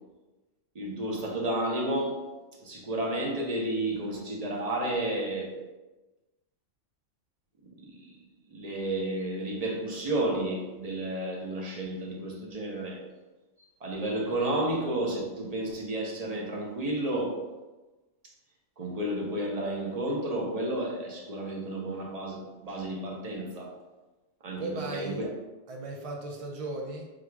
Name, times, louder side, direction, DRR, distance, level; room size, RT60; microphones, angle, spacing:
voice 1, 0.7-2.2 2.6-5.6 7.8-8.2 8.5-13.0 13.8-17.4 18.8-23.7 24.4-25.1, right 1 dB, 35° right, -1 dB, 0.8 m, -31 dB
voice 2, 24.6-25.3 25.7-27.1, right 2 dB, 65° right, 0 dB, 0.3 m, -36 dB
3.9 x 2.4 x 4.5 m, 1.1 s
omnidirectional pair, 1.2 m